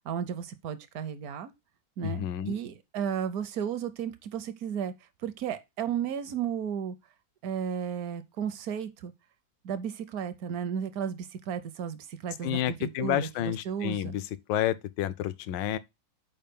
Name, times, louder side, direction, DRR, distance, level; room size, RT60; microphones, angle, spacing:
voice 1, 0.0-1.5 2.0-4.9 5.2-7.0 7.4-9.1 9.6-14.2, right 8 dB, 65° right, 0.9 m, -34 dB
voice 2, 2.0-2.5 12.4-15.8, left 12 dB, 75° left, 1.2 m, -30 dB
5.5 x 4.5 x 5.2 m
omnidirectional pair, 2.1 m